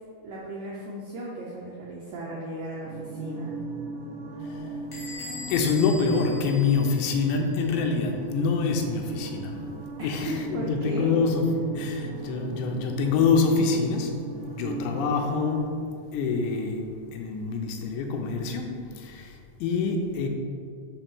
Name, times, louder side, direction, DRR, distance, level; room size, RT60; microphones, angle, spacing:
voice 1, 0.2-3.6 10.0-11.0, right 1 dB, 85° right, -4 dB, 1.9 m, -36 dB
sound 1, 2.8-15.6, right 2 dB, 55° right, 2.5 m, -38 dB
voice 2, 4.4-4.8 5.5-9.6 10.0-15.8 16.1-20.3, left 4 dB, 85° left, 3 dB, 3.0 m, -26 dB
Bell / Door, 4.9-7.4, left 2 dB, 55° left, 1.4 m, -41 dB
6.7 x 4.6 x 6.0 m, 2.3 s
omnidirectional pair, 5.1 m